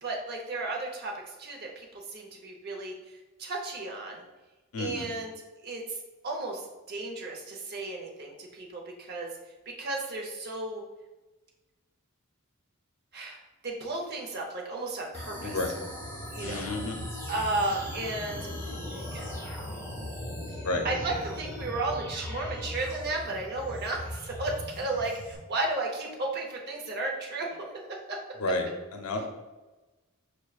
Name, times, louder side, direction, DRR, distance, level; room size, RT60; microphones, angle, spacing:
voice 1, 0.0-2.9 3.4-4.2 4.8-5.3 5.6-6.0 6.2-9.3 9.7-10.8 13.1-15.6 16.3-16.6 17.3-18.5 18.9-19.3 20.8-28.2, right 2 dB, 45° right, 0 dB, 0.8 m, -34 dB
voice 2, 4.7-5.1 15.4-15.7 16.4-17.0 20.6-20.8 28.4-29.3, left 2 dB, 75° left, 4 dB, 0.5 m, -31 dB
sound 1, 15.1-25.4, left 1 dB, 10° left, 0.8 m, -38 dB
6.2 x 2.2 x 2.4 m, 1.2 s
head